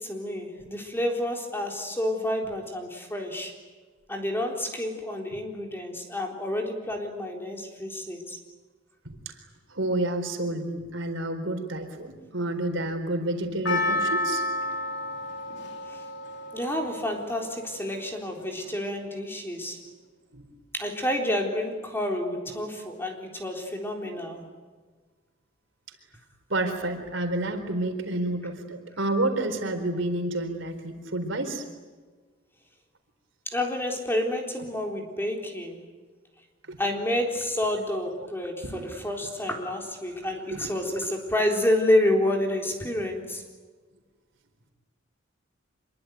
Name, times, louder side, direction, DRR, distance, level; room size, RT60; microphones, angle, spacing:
voice 1, 0.0-3.6 4.1-8.4 15.9-16.0 16.5-19.8 20.7-24.5 33.5-35.8 36.8-43.4, left 1 dB, 10° left, 2 dB, 3.9 m, -29 dB
voice 2, 9.7-14.4 20.3-20.4 26.5-31.6 36.7-36.8 38.7-38.9 40.5-41.0, right 2 dB, 75° right, 6 dB, 4.2 m, -29 dB
Percussion, 13.6-18.0 18.6-18.7, left 2 dB, 60° left, 3.2 m, -31 dB
26.5 x 23.0 x 9.4 m, 1.4 s
head